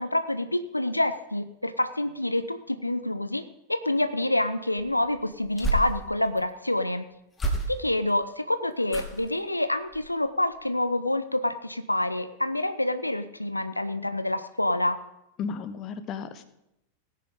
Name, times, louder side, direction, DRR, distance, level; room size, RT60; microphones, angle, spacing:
voice 1, 0.0-3.4 3.7-7.1 7.7-15.0, left 1 dB, 85° left, 11 dB, 0.6 m, -27 dB
sound 1, 4.8-6.4 7.3-8.1 8.9-9.4 9.9-10.2 10.5-10.6, right 2 dB, 15° left, 2.2 m, -31 dB
voice 2, 15.4-16.4, left 6 dB, 35° left, 12 dB, 1.1 m, -34 dB
18.0 x 10.0 x 3.7 m, 0.82 s
figure-of-eight pair, 90°, 0 cm